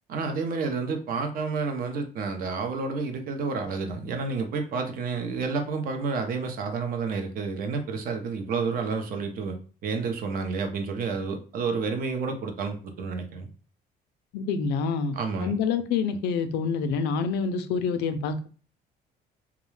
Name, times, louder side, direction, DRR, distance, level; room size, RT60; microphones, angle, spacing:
voice 1, 0.1-13.5 15.1-15.5, right 4 dB, 60° right, 5 dB, 0.6 m, -30 dB
voice 2, 14.3-18.5, left 5 dB, 80° left, 10 dB, 0.4 m, -27 dB
2.4 x 2.1 x 3.1 m, 0.38 s
cardioid pair, 110°, 17 cm